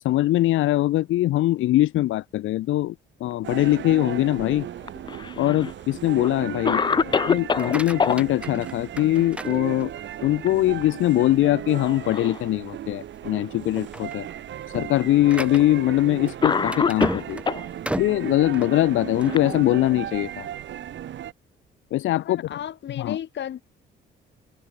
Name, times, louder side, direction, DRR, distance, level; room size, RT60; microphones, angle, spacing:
voice 1, 0.0-2.9 3.2-4.7 5.4-6.8 7.3-9.9 10.2-14.3 14.7-17.4 18.0-20.5 21.9-22.4 23.0-23.2, left 15 dB, 85° left, 1.3 m, -22 dB
sound 1, 3.4-21.3, right 11 dB, 70° right, 2.3 m, -36 dB
Cough, 4.8-5.7 6.2-6.3 6.6-8.2 10.0-10.5 10.8-10.9 11.7-12.4 13.2-13.3 14.4-14.5 15.6-15.8 16.4-17.7 18.6-20.1, left 5 dB, 25° left, 0.4 m, -26 dB
voice 2, 6.7-7.2 22.2-23.6, left 10 dB, 65° left, 5.0 m, -34 dB
sound 2, 7.5-10.2 10.7-11.2 11.6-11.7 12.2-12.3 13.0-13.3 13.6-19.5, right 1 dB, 5° right, 2.7 m, -35 dB
cardioid pair, 90°, 20 cm